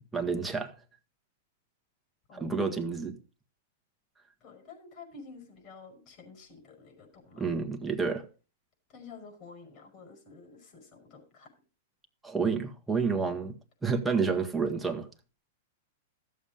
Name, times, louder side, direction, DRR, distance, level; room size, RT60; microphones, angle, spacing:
voice 1, 0.1-0.7 2.3-3.2 7.3-8.2 12.2-13.5 13.8-15.1, right 5 dB, 5° right, 1.6 m, -29 dB
voice 2, 4.4-7.5 8.9-11.5, left 4 dB, 40° left, 5.3 m, -50 dB
14.0 x 7.4 x 5.1 m
hypercardioid pair, 140°, 0 cm